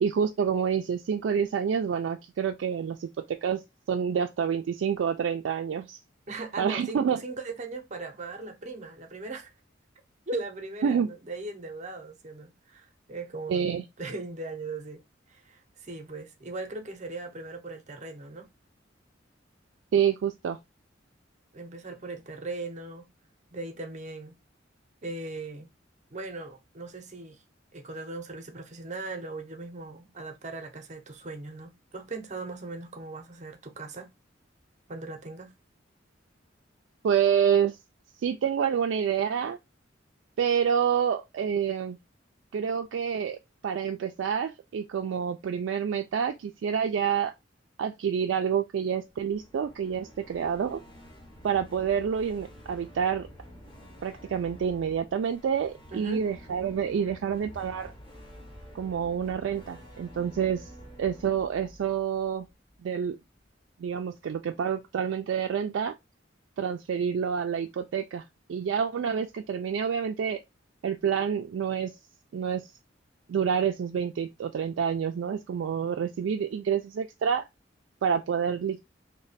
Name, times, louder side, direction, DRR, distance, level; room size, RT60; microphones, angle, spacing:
voice 1, 0.0-3.6 3.9-6.0 6.6-7.2 10.8-11.1 13.5-13.8 19.9-20.6 37.0-37.8 38.2-39.6 40.4-42.0 42.5-43.4 43.6-47.3 47.8-50.8 51.4-53.3 54.0-57.9 58.7-60.7 61.0-62.5 62.8-63.2 63.8-65.9 66.6-68.2 68.5-70.4 70.8-71.9 72.3-72.7 73.3-77.5 78.0-78.8, right 7 dB, 75° right, 0.3 m, -28 dB
voice 2, 6.3-9.5 10.3-15.0 15.3-18.5 21.5-23.1 23.5-24.4 25.0-25.7 26.1-27.4 27.7-34.1 34.9-35.5 55.9-56.3, right 2 dB, 40° right, 0.6 m, -39 dB
sound 1, 49.1-63.1, equal, 25° left, 0.8 m, -49 dB
3.2 x 2.1 x 3.9 m
head